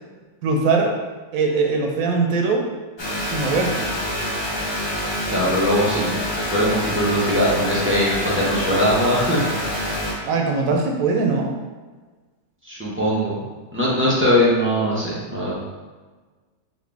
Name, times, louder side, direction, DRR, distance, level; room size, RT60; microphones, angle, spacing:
voice 1, 0.4-0.9 1.3-2.7 3.2-3.9 10.2-11.5, right 4 dB, 80° right, 2 dB, 1.1 m, -21 dB
sound 1, 3.0-10.1, equal, 30° left, 0.5 m, -26 dB
voice 2, 5.3-9.4 12.6-13.4 13.7-15.5, equal, 10° right, -8 dB, 0.6 m, -21 dB
4.2 x 2.5 x 3.4 m, 1.3 s
omnidirectional pair, 1.4 m